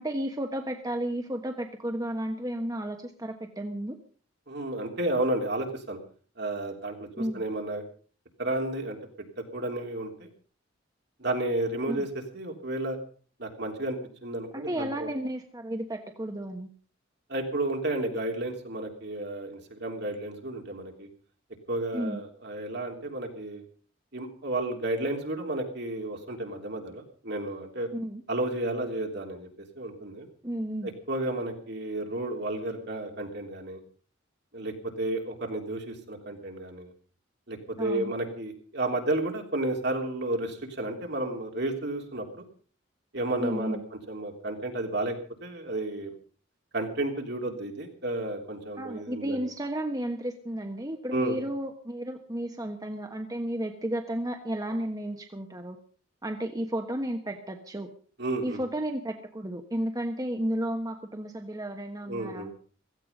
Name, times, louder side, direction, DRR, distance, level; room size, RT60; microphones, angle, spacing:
voice 1, 0.0-4.0 7.2-7.5 11.9-12.1 14.5-16.7 21.9-22.2 27.9-28.2 30.4-30.9 37.8-38.1 43.4-43.8 48.8-55.8 56.2-57.9 58.4-62.5, right 1 dB, 20° right, 4 dB, 1.3 m, -33 dB
voice 2, 4.5-6.0 6.4-7.8 8.4-9.3 9.5-10.3 11.2-12.1 12.3-13.0 13.4-15.1 17.3-21.1 21.7-23.6 24.1-27.9 28.3-29.5 29.8-30.3 30.8-33.8 34.5-36.9 37.5-42.4 43.1-43.8 44.1-45.1 45.4-46.1 46.7-49.5 51.1-51.4 58.2-58.6 62.1-62.5, right 2 dB, 60° right, 3 dB, 3.3 m, -32 dB
16.5 x 15.0 x 5.3 m, 0.43 s
head